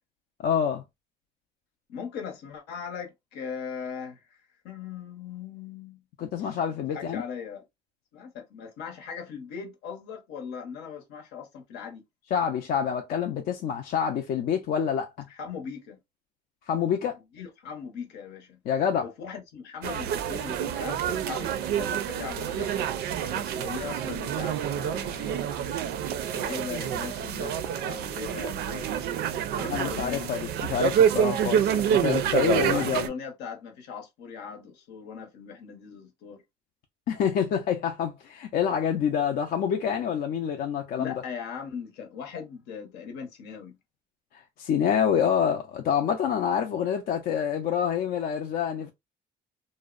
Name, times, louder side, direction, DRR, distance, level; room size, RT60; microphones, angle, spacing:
voice 1, 0.4-0.8 6.2-7.2 12.3-15.1 16.7-17.2 18.7-19.1 29.7-33.1 37.1-41.1 44.3-48.9, left 8 dB, 65° left, 0.5 m, -27 dB
voice 2, 1.9-6.0 6.4-6.6 6.9-7.6 8.1-12.0 15.3-16.0 17.3-18.6 19.0-25.6 26.3-28.9 29.5-30.3 32.6-36.4 41.0-43.8, left 6 dB, 85° left, 0.8 m, -39 dB
sound 1, 19.8-33.1, right 9 dB, 75° right, 0.4 m, -27 dB
2.6 x 2.0 x 2.3 m
cardioid pair, 110°, 17 cm